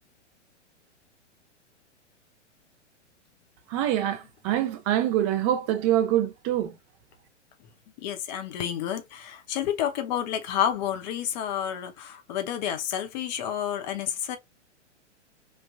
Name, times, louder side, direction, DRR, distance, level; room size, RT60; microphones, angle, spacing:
voice 1, 3.7-6.7, right 12 dB, 30° right, 0.6 m, -25 dB
voice 2, 8.0-14.4, left 10 dB, 40° left, 0.7 m, -30 dB
3.3 x 2.4 x 2.2 m
figure-of-eight pair, 110°, 36 cm